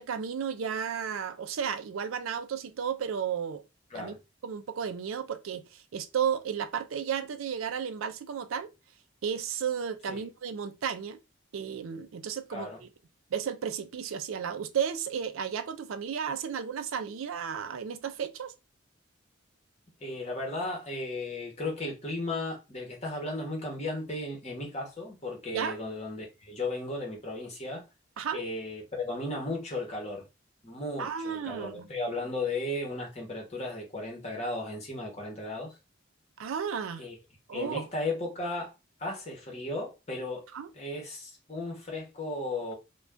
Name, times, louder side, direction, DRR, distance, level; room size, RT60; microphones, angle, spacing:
voice 1, 0.0-3.6 3.9-4.1 4.4-8.7 9.2-11.2 11.5-12.9 13.3-18.5 25.5-25.8 28.2-28.4 31.0-31.9 36.4-37.0 37.5-37.9 40.5-40.7, right 7 dB, 80° right, 0.4 m, -33 dB
voice 2, 20.0-27.8 28.3-30.3 30.6-35.7 37.0-37.2 37.5-38.7 39.0-40.5 40.7-42.7, left 2 dB, 30° left, 1.0 m, -35 dB
2.5 x 2.3 x 3.3 m
head